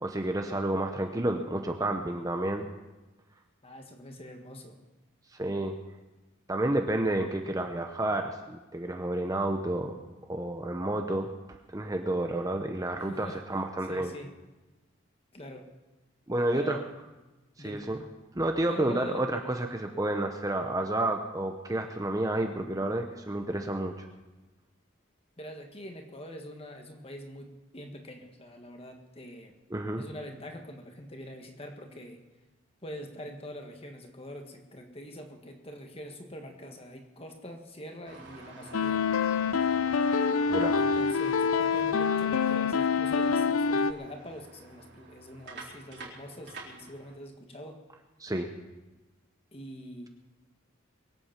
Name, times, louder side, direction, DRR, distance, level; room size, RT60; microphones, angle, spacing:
voice 1, 0.0-2.7 5.3-5.7 6.5-10.0 10.3-11.3 11.7-14.1 16.3-16.8 17.6-18.0 18.3-24.1 29.7-30.0 40.5-40.8 48.2-48.5, right 1 dB, 15° right, 4 dB, 0.8 m, -30 dB
voice 2, 3.6-4.8 13.0-13.4 13.8-14.3 15.3-15.7 16.5-16.9 17.6-17.9 18.6-19.2 25.4-29.5 29.9-32.2 32.8-39.0 40.8-47.8 49.5-50.1, equal, 30° left, 4 dB, 1.6 m, -44 dB
sound 1, 38.0-47.1, right 3 dB, 55° right, 4.1 m, -48 dB
sound 2, 38.7-43.9, left 5 dB, 85° left, 0.5 m, -26 dB
23.0 x 8.5 x 5.8 m, 1.1 s
head